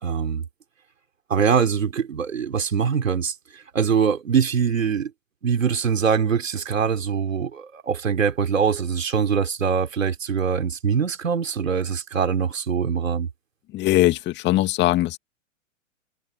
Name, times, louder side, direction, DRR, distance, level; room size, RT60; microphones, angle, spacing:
voice 1, 0.0-0.4 1.3-5.1 5.4-13.3, right 6 dB, 75° right, 4.3 m, -23 dB
voice 2, 13.7-15.2, left 16 dB, 30° left, 2.2 m, -20 dB
hypercardioid pair, 115°, 39 cm